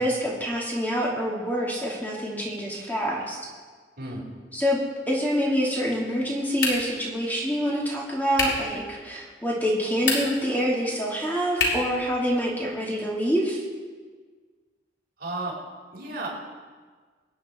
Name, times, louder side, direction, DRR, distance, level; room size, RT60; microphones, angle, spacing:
voice 1, 0.0-3.4 4.5-4.8 5.1-13.6, equal, 10° left, -4 dB, 2.5 m, -26 dB
sound 1, 6.6-7.1 8.3-8.7 9.9-10.5 11.6-12.0, left 3 dB, 85° left, 3.7 m, -26 dB
voice 2, 15.2-15.6 15.9-16.3, right 2 dB, 60° right, -4 dB, 4.7 m, -33 dB
24.0 x 9.5 x 4.4 m, 1.5 s
head